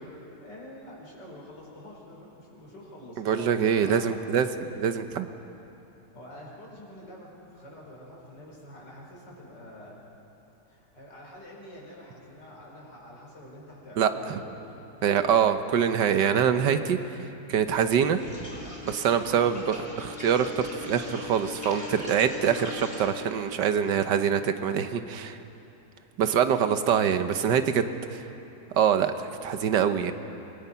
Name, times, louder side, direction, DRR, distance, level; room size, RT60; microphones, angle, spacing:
voice 1, 0.0-4.2 6.1-10.0 10.7-14.9, equal, 80° left, -3 dB, 5.7 m, -46 dB
voice 2, 3.2-5.3 14.0-14.4 15.0-17.2 17.5-18.2 18.9-25.4 26.2-27.8 28.1-28.3 28.7-30.1, right 8 dB, 80° right, 9 dB, 1.6 m, -24 dB
sound 1, 18.1-23.1, left 4 dB, 15° left, 3.7 m, -40 dB
26.5 x 22.0 x 5.8 m, 2.9 s
omnidirectional pair, 1.9 m